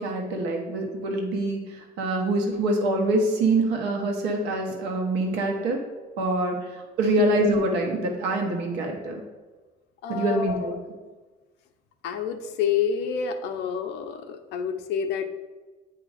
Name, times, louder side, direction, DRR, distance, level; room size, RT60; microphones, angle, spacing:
voice 1, 0.0-5.8 6.2-6.6 7.0-9.2 10.1-10.7, right 2 dB, 90° right, 2 dB, 1.2 m, -25 dB
voice 2, 10.0-10.8 12.0-15.3, left 7 dB, 85° left, 6 dB, 0.7 m, -28 dB
8.6 x 2.9 x 4.9 m, 1.3 s
cardioid pair, 110°, 17 cm